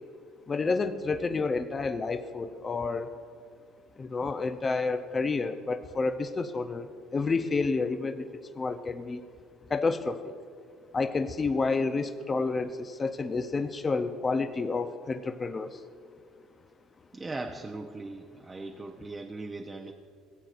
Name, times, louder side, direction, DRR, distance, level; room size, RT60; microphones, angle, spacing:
voice 1, 0.5-3.1 4.0-8.3 8.6-9.2 9.7-10.3 10.9-15.8, left 4 dB, 30° left, 9 dB, 0.5 m, -29 dB
voice 2, 17.1-19.9, right 2 dB, 20° right, 2 dB, 0.6 m, -39 dB
17.5 x 7.7 x 2.5 m, 2.1 s
supercardioid pair, 80°, 0 cm